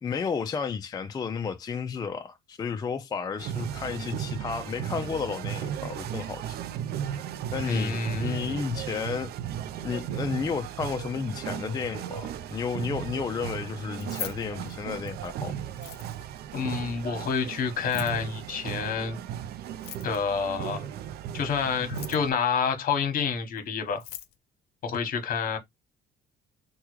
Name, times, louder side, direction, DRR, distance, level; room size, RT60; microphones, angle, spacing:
voice 1, 0.0-6.6 7.5-9.3 9.8-15.5, left 6 dB, 25° left, 0.4 m, -32 dB
sound 1, 3.4-22.3, right 10 dB, 70° right, 0.4 m, -36 dB
voice 2, 7.7-8.6 16.5-19.2 20.0-20.9 21.3-24.0 24.8-25.6, left 6 dB, 55° left, 1.0 m, -28 dB
Keys jangling, 13.9-15.3 15.7-16.4 17.8-18.2 19.7-20.4 21.8-22.4 23.6-23.7 23.9-24.3, left 11 dB, 75° left, 0.6 m, -41 dB
3.5 x 2.2 x 3.0 m
cardioid pair, 110°, 17 cm